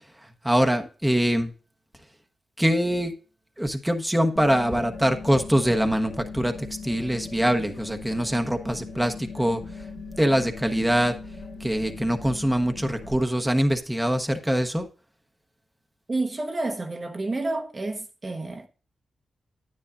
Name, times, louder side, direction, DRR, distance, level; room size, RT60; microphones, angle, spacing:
voice 1, 0.4-1.5 2.6-3.1 3.6-9.6 10.2-11.2 11.6-14.9, equal, 5° right, 1.1 m, -23 dB
sound 1, 4.3-13.1, left 4 dB, 85° left, 1.8 m, -39 dB
voice 2, 16.1-18.7, right 2 dB, 35° right, 1.0 m, -29 dB
9.9 x 9.3 x 2.6 m
cardioid pair, 65°, 0 cm